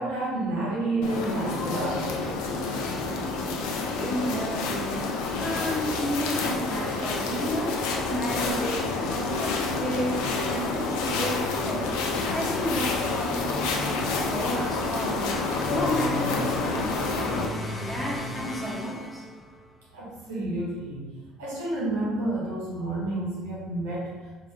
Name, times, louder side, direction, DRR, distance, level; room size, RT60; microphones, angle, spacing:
voice 1, 0.0-2.2 4.5-4.6 6.4-6.5 10.4-10.5 18.8-18.9 19.9-21.1 21.4-24.1, right 2 dB, 90° right, -7 dB, 1.1 m, -30 dB
sound 1, 1.0-17.5, left 3 dB, 75° left, 0.5 m, -28 dB
voice 2, 3.9-11.9 12.3-19.2, equal, 5° right, -5 dB, 1.1 m, -33 dB
sound 2, 13.0-19.7, left 2 dB, 25° left, 0.6 m, -36 dB
4.3 x 2.4 x 2.7 m, 1.3 s
hypercardioid pair, 70°, 0 cm